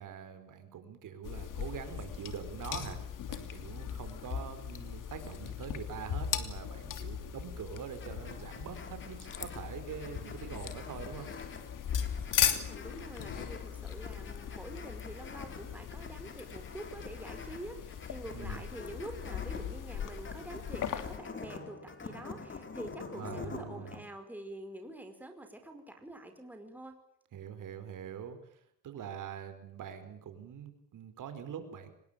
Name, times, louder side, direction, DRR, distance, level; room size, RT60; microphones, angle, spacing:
voice 1, 0.0-3.0 3.3-11.3 18.3-18.7 23.1-24.0 27.3-31.9, right 8 dB, 65° right, 9 dB, 4.8 m, -44 dB
sound 1, 1.2-21.2, left 9 dB, 65° left, 2.9 m, -38 dB
sound 2, 8.0-24.0, left 4 dB, 35° left, 4.4 m, -47 dB
voice 2, 12.6-27.0, right 1 dB, 5° right, 5 dB, 4.9 m, -46 dB
25.0 x 21.0 x 9.1 m, 0.74 s
cardioid pair, 110°, 34 cm